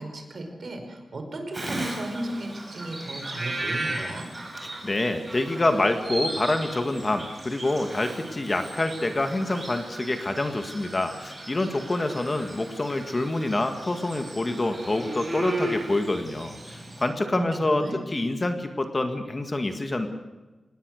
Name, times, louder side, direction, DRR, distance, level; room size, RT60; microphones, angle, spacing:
voice 1, 0.0-4.3 17.3-18.0, right 1 dB, 45° right, 4 dB, 5.1 m, -35 dB
Bird vocalization bird call bird song, 1.5-17.0, right 1 dB, 25° right, 6.7 m, -36 dB
voice 2, 4.6-20.1, left 2 dB, 25° left, 7 dB, 1.8 m, -27 dB
26.5 x 19.5 x 6.5 m, 1.2 s
wide cardioid pair, 165°, 0 cm